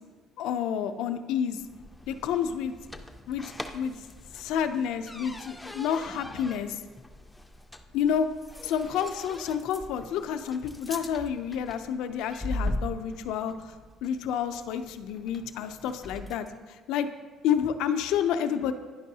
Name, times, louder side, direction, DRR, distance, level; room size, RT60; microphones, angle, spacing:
voice 1, 0.4-1.6 2.1-2.7 3.3-3.9 4.3-6.8 7.9-8.3 8.6-13.8 14.0-17.1 17.4-18.7, left 8 dB, 80° left, 9 dB, 0.4 m, -29 dB
sound 1, 1.5-16.6, left 1 dB, 5° left, 0.4 m, -41 dB
10.0 x 5.3 x 2.7 m, 1.4 s
cardioid pair, 150°, 0 cm